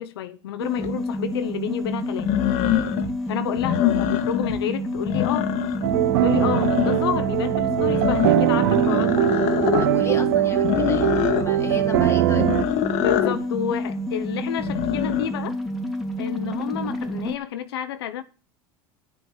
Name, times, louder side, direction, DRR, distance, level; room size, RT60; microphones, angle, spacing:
voice 1, 0.0-2.3 3.3-5.5 6.2-9.4 13.0-15.6 16.2-18.2, left 10 dB, 85° left, 0.8 m, -29 dB
hyper-space-connection-hyperavaruusyhteys, 0.6-17.4, equal, ahead, 2.2 m, -29 dB
sound 1, 0.8-0.9 2.2-3.1 3.5-4.6 5.0-5.9 6.3-7.2 7.8-9.9 10.6-11.5 12.3-13.4 14.6-15.3, left 12 dB, 60° left, 1.2 m, -24 dB
sound 2, 5.8-12.6, right 14 dB, 75° right, 0.6 m, -21 dB
voice 2, 9.8-11.1 11.4-12.5, left 4 dB, 20° left, 1.8 m, -34 dB
10.5 x 6.2 x 7.2 m
hypercardioid pair, 90°, 13 cm